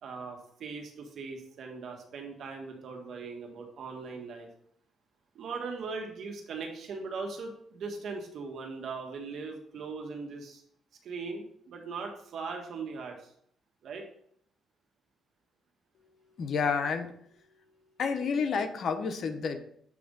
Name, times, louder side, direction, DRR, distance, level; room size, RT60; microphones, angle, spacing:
voice 1, 0.0-4.5 5.3-10.6 11.0-13.2 13.8-14.0, right 4 dB, 65° right, 3 dB, 1.5 m, -39 dB
voice 2, 16.4-17.1 18.0-19.6, left 5 dB, 60° left, 7 dB, 0.9 m, -29 dB
7.6 x 3.4 x 5.3 m, 0.66 s
cardioid pair, 90°, 0 cm